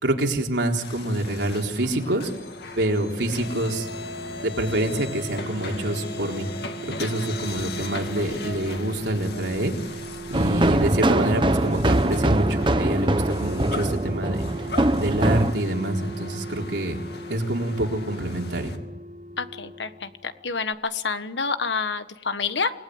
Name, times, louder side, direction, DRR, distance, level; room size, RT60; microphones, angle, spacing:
voice 1, 0.0-2.3 2.8-3.9 4.4-6.5 6.8-9.7 10.3-17.0 17.3-18.7, right 1 dB, 90° right, 1 dB, 3.9 m, -26 dB
sound 1, 0.8-18.8, left 3 dB, 65° left, 2.3 m, -39 dB
sound 2, 2.2-20.4 20.7-20.8, right 3 dB, 45° right, 3.4 m, -39 dB
sound 3, 10.3-15.5, right 1 dB, 25° right, 1.0 m, -22 dB
voice 2, 19.4-22.7, left 4 dB, 90° left, 11 dB, 1.5 m, -28 dB
28.0 x 19.5 x 9.6 m, 1.1 s
head